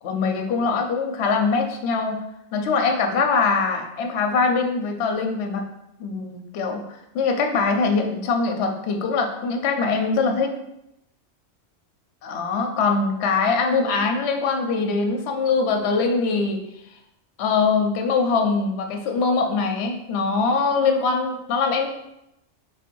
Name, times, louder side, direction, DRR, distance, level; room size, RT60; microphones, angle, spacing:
voice 1, 0.0-2.2 2.5-5.7 6.0-6.8 7.1-10.5 12.2-16.6 17.4-21.9, left 4 dB, 65° left, 3 dB, 0.8 m, -22 dB
3.8 x 2.6 x 4.4 m, 0.84 s
omnidirectional pair, 1.2 m